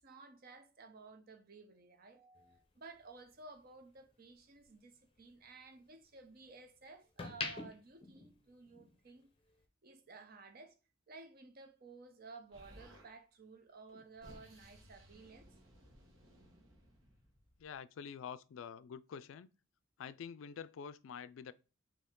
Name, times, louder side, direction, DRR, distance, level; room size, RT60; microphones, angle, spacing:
voice 1, 0.0-9.3 9.8-10.8 11.1-15.5, right 3 dB, 50° right, 0.7 m, -55 dB
sound 1, 2.3-4.7 5.1-6.5 6.9-9.1 9.4-9.6, left 4 dB, 25° left, 0.6 m, -46 dB
Explosion, 12.5-13.1 13.9-17.7, equal, 85° right, 1.3 m, -60 dB
voice 2, 17.6-19.5 20.0-21.5, left 7 dB, 80° left, 0.3 m, -47 dB
4.5 x 2.8 x 3.6 m
head